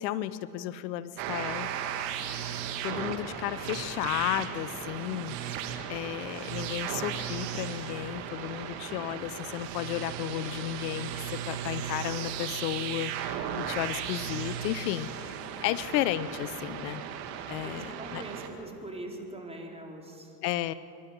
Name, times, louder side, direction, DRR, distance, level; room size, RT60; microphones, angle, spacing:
voice 1, 0.0-1.7 2.8-17.0 17.5-18.2 20.4-20.7, left 13 dB, 85° left, 16 dB, 0.8 m, -33 dB
sound 1, 1.2-18.5, right 8 dB, 80° right, 2.1 m, -36 dB
voice 2, 17.6-20.3, right 2 dB, 10° right, 0 dB, 4.4 m, -42 dB
26.5 x 12.0 x 9.3 m, 2.8 s
supercardioid pair, 80°, 48 cm